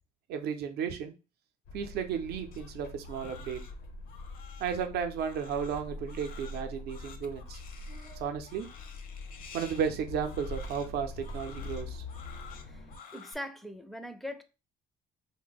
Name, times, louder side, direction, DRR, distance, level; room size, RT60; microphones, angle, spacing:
voice 1, 0.3-1.1 1.7-3.6 4.6-7.6 7.9-8.7 9.5-12.0, right 7 dB, 75° right, 0.5 m, -34 dB
sound 1, 1.7-13.0, left 2 dB, 85° left, 0.9 m, -44 dB
Crying sobbing, 2.5-13.3, left 6 dB, 55° left, 0.6 m, -52 dB
voice 2, 13.1-14.4, left 1 dB, ahead, 0.4 m, -41 dB
2.6 x 2.1 x 4.0 m
cardioid pair, 110°, 17 cm